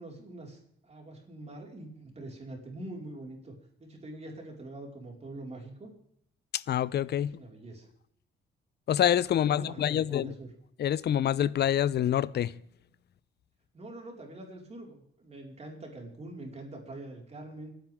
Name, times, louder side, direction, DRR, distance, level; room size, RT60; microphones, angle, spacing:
voice 1, 0.0-3.5 3.8-5.9 7.1-7.9 9.3-10.5 13.7-17.7, right 2 dB, 35° right, 4.8 m, -44 dB
voice 2, 6.5-7.4 8.9-10.3 10.8-12.5, left 10 dB, 55° left, 0.6 m, -26 dB
28.0 x 10.5 x 3.6 m
cardioid pair, 90°, 20 cm